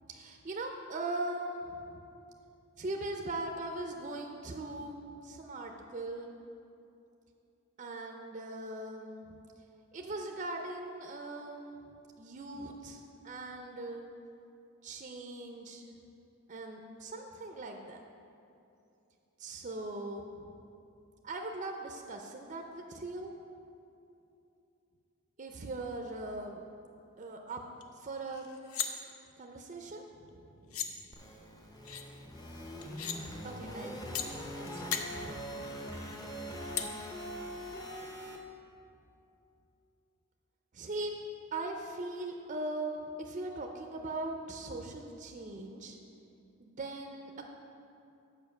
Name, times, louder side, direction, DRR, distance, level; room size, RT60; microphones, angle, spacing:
voice 1, 0.1-2.0 2.8-6.3 7.8-9.4 9.9-11.8 12.2-14.1 14.8-15.9 16.5-18.0 19.4-20.6 21.2-23.3 25.4-26.7 27.2-27.6 28.0-28.4 29.4-31.0 33.4-35.5 40.7-41.1 41.5-46.0 46.6-47.5, right 2 dB, 35° right, 3 dB, 0.4 m, -40 dB
sound 1, 27.8-27.9 28.2-28.9 30.3-30.4 30.7-30.9 31.8-32.0 32.8-33.2 34.1-34.3 34.7-35.0 36.8-36.9, left 9 dB, 80° left, 0.6 m, -35 dB
sound 2, 31.1-38.4, equal, 20° left, 0.6 m, -42 dB
7.1 x 5.2 x 6.5 m, 2.7 s
head